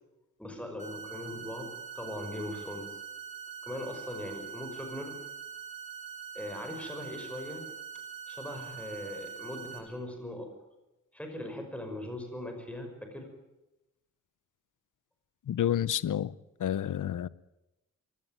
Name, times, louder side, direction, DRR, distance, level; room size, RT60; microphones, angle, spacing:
voice 1, 0.4-3.0 3.6-5.2 6.3-7.7 8.3-10.5 11.1-13.3, left 1 dB, 5° left, 5.7 m, -40 dB
sound 1, 0.8-9.8, right 7 dB, 25° right, 6.1 m, -43 dB
voice 2, 15.5-16.3 16.6-17.3, left 10 dB, 85° left, 0.8 m, -29 dB
23.5 x 17.0 x 9.3 m
wide cardioid pair, 135°, 31 cm